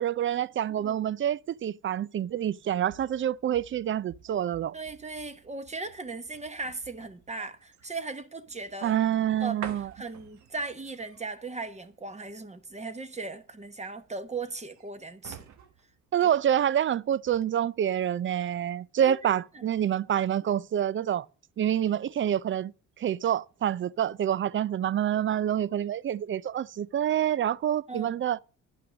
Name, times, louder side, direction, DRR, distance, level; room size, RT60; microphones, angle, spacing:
voice 1, 0.0-4.8 8.8-9.9 16.1-21.3 21.6-22.7 23.0-28.4, right 10 dB, 40° right, 0.4 m, -27 dB
sound 1, 2.5-16.9 17.2-17.4, right 8 dB, 70° right, 1.3 m, -50 dB
voice 2, 4.7-9.0 9.4-9.7 9.9-15.5 16.2-16.3 19.0-19.3 27.9-28.2, right 3 dB, 20° right, 1.2 m, -38 dB
11.0 x 5.7 x 6.3 m
cardioid pair, 90°, 30 cm